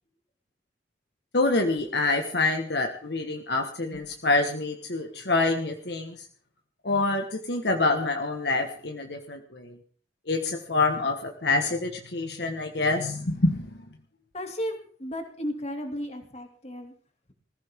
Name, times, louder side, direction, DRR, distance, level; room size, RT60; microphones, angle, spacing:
voice 1, 1.3-6.3 6.8-9.8 10.3-13.8, left 3 dB, 65° left, 4 dB, 1.5 m, -26 dB
voice 2, 14.3-16.9, equal, 35° left, 4 dB, 2.5 m, -34 dB
20.0 x 15.0 x 3.7 m, 0.43 s
head